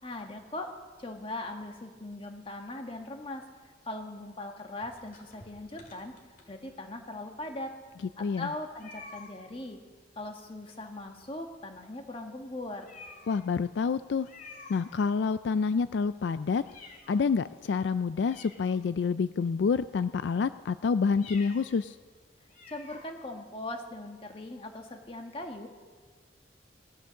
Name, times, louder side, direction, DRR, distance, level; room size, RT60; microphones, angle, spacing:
voice 1, 0.0-0.7 1.0-3.4 3.8-6.2 6.5-7.7 8.2-9.8 10.2-12.9 22.7-25.7, left 2 dB, 30° left, 4 dB, 1.5 m, -40 dB
sound 1, 4.8-6.9 7.5-7.6 7.8-7.9 8.8-9.4 10.7-11.2 11.5-11.7 12.1-12.2 12.8-13.5 14.2-15.3 15.7-17.4 17.8-17.9 18.2-19.2 19.8-20.1 21.1-21.7 22.1-22.2 22.5-23.0, left 3 dB, 45° left, 2.3 m, -51 dB
voice 2, 13.3-14.3 14.7-16.6 17.1-22.0, left 5 dB, 70° left, 13 dB, 0.4 m, -28 dB
18.0 x 12.0 x 6.4 m, 1.5 s
head